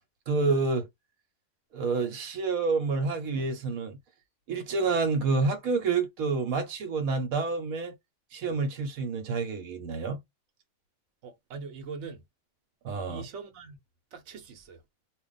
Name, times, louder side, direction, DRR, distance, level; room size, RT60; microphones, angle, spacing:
voice 1, 0.3-0.9 1.7-4.0 4.5-7.9 8.3-10.2 12.8-13.3, right 4 dB, 85° right, 1.2 m, -28 dB
voice 2, 11.2-12.2 13.1-13.8 14.1-14.8, right 5 dB, 65° right, 1.1 m, -42 dB
2.4 x 2.2 x 3.9 m
omnidirectional pair, 1.4 m